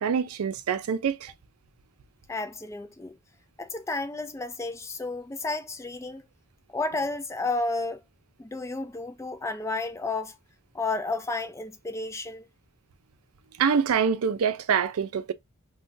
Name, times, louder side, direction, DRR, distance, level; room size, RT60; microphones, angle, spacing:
voice 1, 0.0-1.3 13.6-15.3, right 7 dB, 90° right, 0.4 m, -25 dB
voice 2, 2.3-3.2 3.6-6.2 6.7-8.0 8.4-10.4 10.7-12.5, left 3 dB, 15° left, 0.3 m, -32 dB
2.6 x 2.2 x 3.7 m
head